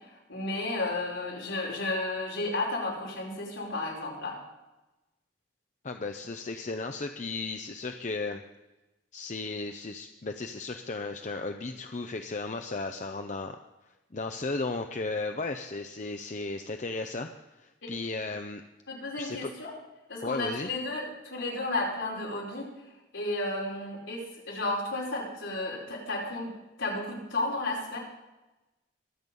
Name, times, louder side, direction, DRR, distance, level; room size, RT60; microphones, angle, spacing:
voice 1, 0.3-4.4 18.9-19.7 20.1-22.7 23.1-26.5 26.8-28.0, left 2 dB, 75° left, -3 dB, 5.0 m, -32 dB
voice 2, 5.8-8.4 9.1-13.6 14.1-17.3 17.6-18.6 19.2-19.5 20.2-20.7, left 3 dB, 40° left, 6 dB, 0.6 m, -35 dB
23.0 x 8.1 x 5.4 m, 1.0 s
head